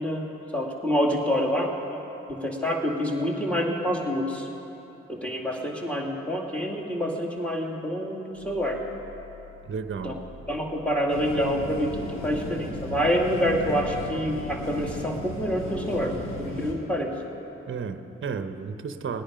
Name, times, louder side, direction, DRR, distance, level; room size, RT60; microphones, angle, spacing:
voice 1, 0.0-1.7 2.3-4.5 5.1-8.8 10.0-12.0 12.2-17.1, equal, 5° left, 0 dB, 2.3 m, -27 dB
sound 1, 8.3-14.3, left 1 dB, 35° left, 3.7 m, -49 dB
voice 2, 9.6-10.2 17.7-19.2, right 5 dB, 40° right, 9 dB, 1.0 m, -33 dB
sound 2, 11.1-16.7, left 1 dB, 80° left, 2.0 m, -35 dB
19.0 x 10.0 x 5.2 m, 3.0 s
supercardioid pair, 55°, 31 cm